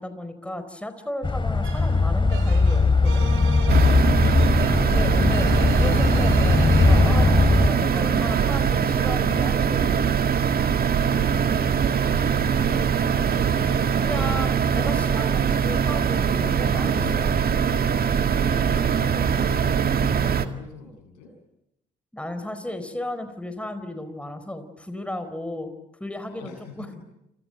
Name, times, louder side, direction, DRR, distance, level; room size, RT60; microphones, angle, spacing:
voice 1, 0.0-3.3 4.7-10.2 13.9-17.4 22.1-25.7 26.0-26.9, left 1 dB, 5° left, 9 dB, 4.4 m, -34 dB
sound 1, 1.2-7.7, left 3 dB, 25° left, 3.1 m, -19 dB
sound 2, 1.6-7.3 8.2-14.4, right 9 dB, 70° right, 3.0 m, -40 dB
sound 3, 3.7-20.5, right 7 dB, 45° right, 2.1 m, -22 dB
voice 2, 10.6-13.5 18.3-21.3 26.3-27.0, left 4 dB, 80° left, 3 dB, 8.0 m, -43 dB
29.5 x 25.0 x 7.9 m, 0.85 s
hypercardioid pair, 45°, 21 cm